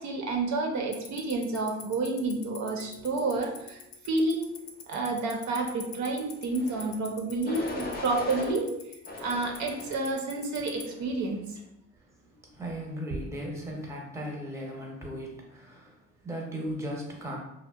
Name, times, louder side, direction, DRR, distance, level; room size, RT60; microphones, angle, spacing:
voice 1, 0.0-4.5 4.9-8.7 9.2-11.6, right 3 dB, 65° right, 2 dB, 0.5 m, -30 dB
Tick-tock, 0.9-10.8, left 8 dB, 80° left, 0.5 m, -41 dB
sound 1, 6.5-6.9 7.4-8.5 9.1-10.1 10.7-11.1, left 2 dB, 30° left, 0.5 m, -38 dB
voice 2, 12.3-17.4, equal, 10° right, -1 dB, 0.6 m, -37 dB
2.7 x 2.0 x 2.3 m, 0.83 s
cardioid pair, 90°, 30 cm